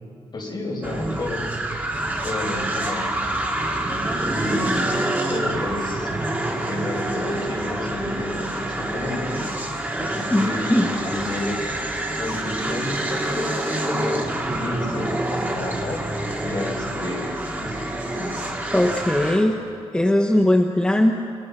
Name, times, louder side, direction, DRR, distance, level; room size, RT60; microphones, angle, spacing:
voice 1, 0.3-1.4 2.2-3.1 4.2-5.0 5.3-6.1 6.7-9.4 10.0-11.6 12.2-14.2 14.6-16.0 16.4-17.2 17.6-17.8 18.2-18.4, left 2 dB, 45° left, -1 dB, 5.6 m, -30 dB
sound 1, 0.8-19.5, right 1 dB, 15° right, 2.7 m, -27 dB
voice 2, 10.3-10.9 18.7-19.6 19.9-21.2, left 1 dB, 10° left, 1 dB, 1.1 m, -19 dB
28.5 x 23.5 x 5.6 m, 2.4 s
wide cardioid pair, 140°, 10 cm